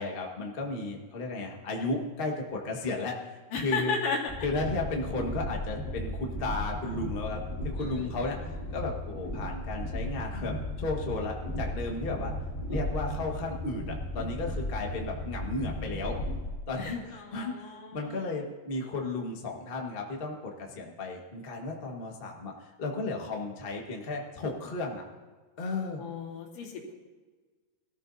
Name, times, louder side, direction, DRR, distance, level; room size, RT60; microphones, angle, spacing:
voice 1, 0.0-3.9 4.4-12.3 12.7-16.2 16.7-25.0 25.6-26.0, left 3 dB, 40° left, 0 dB, 0.8 m, -34 dB
voice 2, 3.5-4.2 7.8-8.6 16.8-18.4 26.0-26.9, left 4 dB, 75° left, -2 dB, 3.8 m, -35 dB
Train, 4.3-16.5, left 1 dB, 15° left, 2.3 m, -35 dB
22.0 x 13.5 x 2.7 m, 1.3 s
omnidirectional pair, 3.8 m